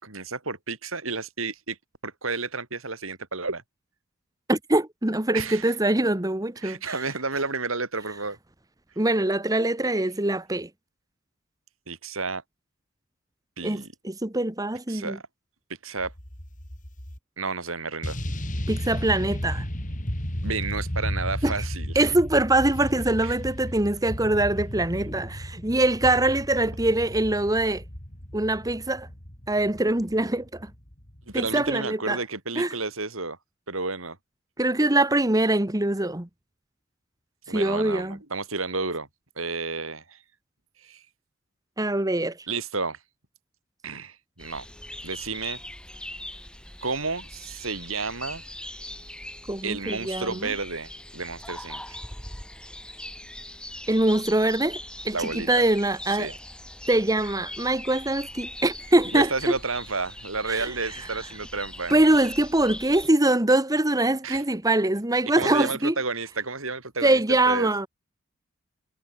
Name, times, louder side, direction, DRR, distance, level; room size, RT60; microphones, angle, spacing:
voice 1, 0.0-1.8 2.0-3.6 5.3-5.7 6.6-8.4 11.9-12.4 13.6-13.9 14.9-15.2 15.8-16.1 17.4-18.2 20.4-22.1 23.2-23.4 31.3-33.4 33.7-34.2 37.5-39.1 39.4-40.2 40.8-41.0 42.5-43.0 43.8-44.7 45.0-45.6 46.8-48.4 49.6-52.0 55.1-55.7 56.2-56.4 59.1-61.9 64.2-64.4 65.2-67.7, right 4 dB, 75° right, 5.3 m, -31 dB
voice 2, 4.5-7.0 9.0-10.7 13.6-15.2 18.7-19.7 21.4-21.6 21.9-27.8 28.3-29.1 29.5-30.7 31.3-32.2 32.6-32.7 34.6-36.3 37.5-38.2 41.8-42.4 49.5-50.5 53.9-54.8 55.0-56.3 56.9-59.5 60.5-60.7 61.9-65.9 67.0-67.9, right 1 dB, 15° right, 1.3 m, -23 dB
sound 1, 16.0-17.2 18.0-31.7, equal, 40° left, 5.0 m, -34 dB
sound 2, 44.4-63.1, left 1 dB, 5° left, 5.7 m, -41 dB
head